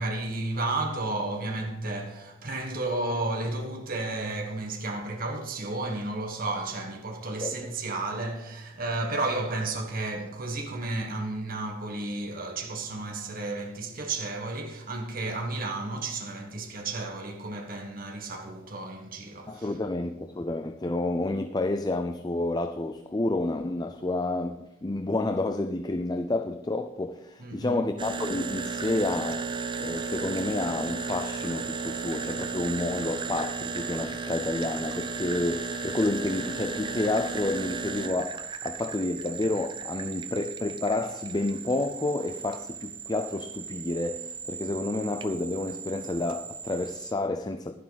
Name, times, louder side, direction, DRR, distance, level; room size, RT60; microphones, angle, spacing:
voice 1, 0.0-19.7 27.4-27.8, right 2 dB, 45° right, 1.5 m, -32 dB
voice 2, 19.5-29.5 29.8-47.7, left 2 dB, 20° left, 0.5 m, -30 dB
sound 1, 28.0-47.1, right 5 dB, 25° right, 0.6 m, -35 dB
11.5 x 11.0 x 4.0 m
head